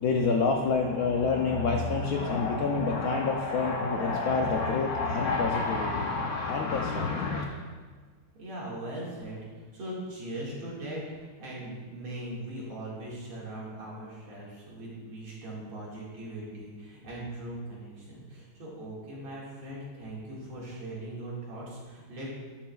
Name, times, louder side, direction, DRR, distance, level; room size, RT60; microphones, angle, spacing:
voice 1, 0.0-7.4, left 4 dB, 75° left, 2 dB, 0.8 m, -27 dB
voice 2, 8.4-22.3, right 1 dB, 80° right, -6 dB, 2.8 m, -40 dB
11.0 x 7.3 x 2.3 m, 1.5 s
omnidirectional pair, 2.3 m